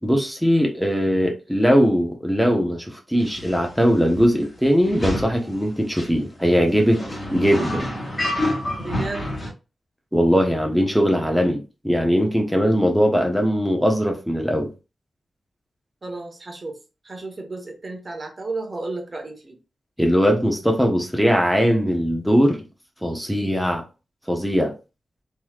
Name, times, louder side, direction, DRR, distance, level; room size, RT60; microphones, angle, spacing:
voice 1, 0.0-7.0 7.3-7.9 10.1-14.7 20.0-22.7 23.0-23.8 24.3-24.7, equal, ahead, 0.9 m, -20 dB
sound 1, 3.3-3.6 4.1-4.3 4.8-5.4 6.0-6.1 6.7-9.5, left 1 dB, 20° left, 1.8 m, -27 dB
voice 2, 8.8-9.3 16.0-16.8 17.0-19.6, right 2 dB, 35° right, 1.1 m, -33 dB
3.9 x 3.1 x 2.3 m
wide cardioid pair, 115°, 0 cm